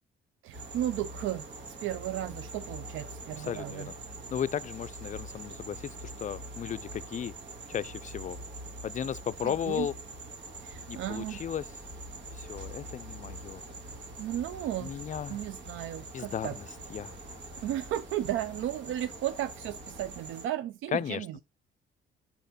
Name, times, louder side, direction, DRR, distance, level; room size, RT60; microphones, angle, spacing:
voice 1, 0.4-3.9 9.4-9.9 10.6-11.4 14.2-14.9 15.3-16.5 17.6-21.4, right 12 dB, 85° right, 0.5 m, -34 dB
sound 1, 0.5-20.5, right 2 dB, 65° right, 2.2 m, -44 dB
voice 2, 3.4-4.0 4.3-7.3 7.7-8.4 8.8-9.9 10.9-11.7 12.3-13.6 14.8-15.4 16.1-16.6 16.9-17.4 20.9-21.3, left 9 dB, 40° left, 0.4 m, -35 dB
sound 2, 10.4-20.1, left 2 dB, 5° left, 1.7 m, -54 dB
5.6 x 4.3 x 5.1 m
cardioid pair, 90°, 20 cm